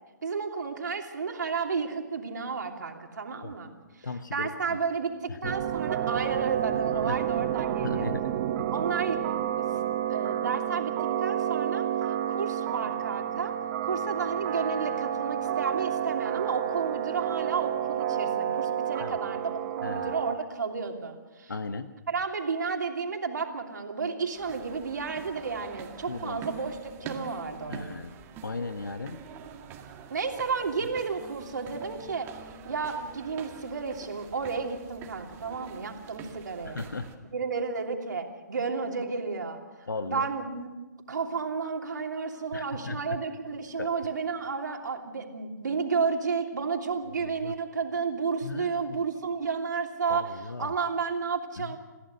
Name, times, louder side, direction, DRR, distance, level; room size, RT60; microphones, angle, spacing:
voice 1, 0.2-3.7 4.0-8.1 8.7-9.7 10.1-11.9 12.3-13.5 13.8-21.5 22.1-28.0 30.1-32.3 32.6-36.8 37.3-39.6 40.0-40.7 41.1-50.3 50.6-51.8, right 5 dB, 75° right, 3 dB, 3.0 m, -32 dB
voice 2, 4.0-4.8 5.3-5.5 7.1-7.2 7.8-8.3 8.6-8.7 19.0-19.2 19.8-20.2 21.5-21.9 26.1-26.4 27.7-28.2 28.4-29.2 36.6-37.1 39.9-40.3 42.5-43.2 43.8-43.9 47.2-47.5 48.4-49.0 50.1-50.7 51.6-51.8, left 3 dB, 85° left, 10 dB, 1.2 m, -36 dB
sound 1, 5.4-20.4, right 10 dB, 40° right, 1.5 m, -30 dB
sound 2, 24.3-37.1, right 6 dB, 25° right, 2.0 m, -46 dB
27.5 x 15.0 x 6.6 m, 1.2 s
hypercardioid pair, 135°, 10 cm